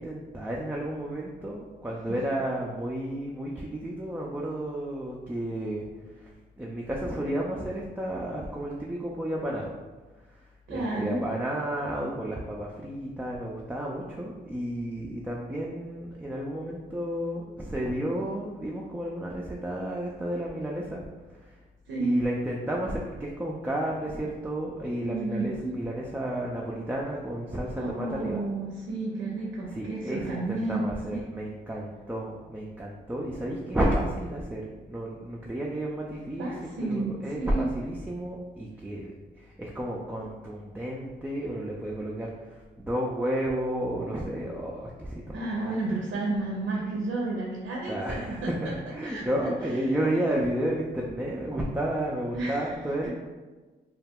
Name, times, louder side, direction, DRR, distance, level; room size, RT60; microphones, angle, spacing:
voice 1, 0.0-5.9 6.1-6.3 6.6-9.7 10.7-21.0 21.5-21.6 22.0-28.4 29.7-34.6 34.9-36.5 36.9-42.3 42.8-45.4 47.9-53.1, right 1 dB, 10° right, -3 dB, 0.4 m, -32 dB
voice 2, 10.7-11.2 21.9-22.2 25.1-25.8 27.8-30.8 31.1-31.2 36.4-37.1 37.4-37.6 45.3-48.5 49.0-49.2 49.9-50.0 52.3-52.8, right 2 dB, 75° right, -3 dB, 0.5 m, -31 dB
2.3 x 2.1 x 3.4 m, 1.3 s
supercardioid pair, 45°, 20 cm